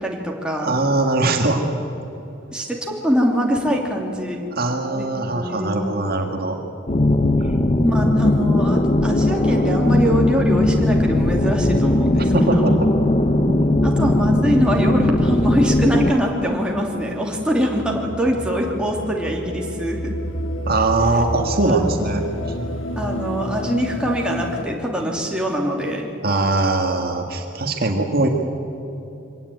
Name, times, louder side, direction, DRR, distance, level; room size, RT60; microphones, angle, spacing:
voice 1, 0.0-0.7 2.5-4.4 4.9-5.9 7.8-12.7 13.8-20.1 21.6-21.8 23.0-26.1, equal, 5° right, -1 dB, 2.9 m, -23 dB
voice 2, 0.6-1.6 4.5-6.6 12.3-12.9 13.5-13.6 20.7-22.2 26.2-28.3, right 2 dB, 45° right, 3 dB, 1.7 m, -21 dB
sound 1, 6.9-16.1, left 1 dB, 30° left, 0.8 m, -18 dB
sound 2, 16.0-24.6, equal, 70° left, 1.6 m, -30 dB
24.0 x 17.5 x 9.4 m, 2.9 s
head